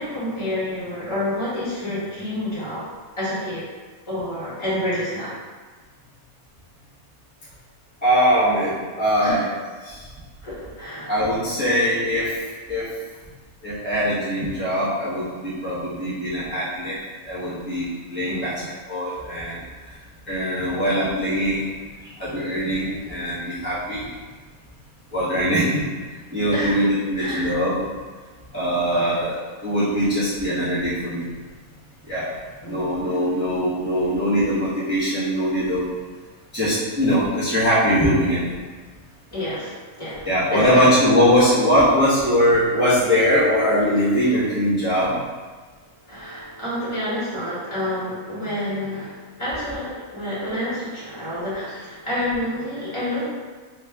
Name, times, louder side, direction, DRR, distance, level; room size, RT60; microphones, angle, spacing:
voice 1, 0.0-2.8 3.2-3.6 4.1-5.3 8.4-8.5 9.2-9.4 10.4-11.1 18.3-18.7 25.5-25.7 26.5-26.8 27.1-27.5 28.9-29.2 32.6-33.0 39.3-40.9 46.1-53.3, left 1 dB, 20° left, -10 dB, 1.4 m, -29 dB
voice 2, 8.0-9.4 9.8-10.1 11.1-12.4 12.7-12.9 13.6-17.0 17.2-18.6 18.9-19.6 20.3-21.7 22.0-24.0 25.1-25.8 26.3-27.8 28.5-31.3 32.1-32.3 32.6-35.8 36.5-38.4 40.2-45.2, equal, 10° right, -11 dB, 0.8 m, -21 dB
3.0 x 2.8 x 3.5 m, 1.5 s
omnidirectional pair, 1.5 m